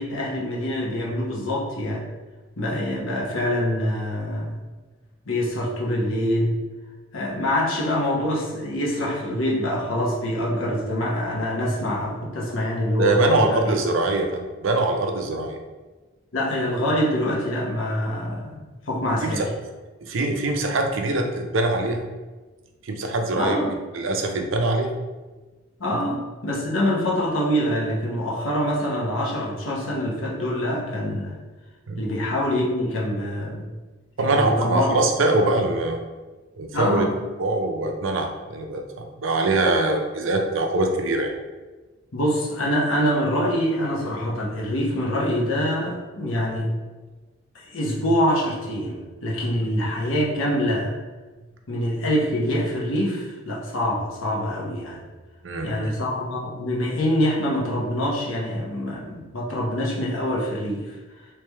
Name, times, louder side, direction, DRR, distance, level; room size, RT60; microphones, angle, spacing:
voice 1, 0.0-2.0 2.6-4.6 5.3-6.5 7.1-13.7 16.3-19.5 23.4-23.7 25.8-31.4 32.0-33.7 34.2-35.0 36.7-37.1 42.1-46.7 47.5-50.9 51.7-55.0 55.6-61.0, equal, 85° left, -3 dB, 1.0 m, -25 dB
voice 2, 13.0-15.6 19.2-19.5 20.0-22.0 22.8-23.6 23.9-24.9 31.9-32.0 34.2-36.0 36.6-37.0 37.4-41.3 55.4-55.9, right 2 dB, 80° right, 4 dB, 0.5 m, -23 dB
3.3 x 3.3 x 3.3 m, 1.2 s
head